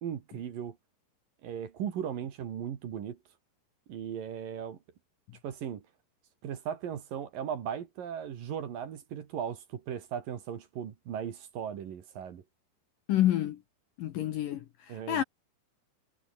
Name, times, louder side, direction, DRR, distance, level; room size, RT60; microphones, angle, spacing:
voice 1, 0.0-0.8 1.4-3.2 3.9-4.8 5.4-5.8 6.4-12.4 14.9-15.2, right 8 dB, 55° right, 3.3 m, -37 dB
voice 2, 13.1-13.6 14.0-15.2, left 12 dB, 65° left, 2.2 m, -29 dB
omnidirectional pair, 5.1 m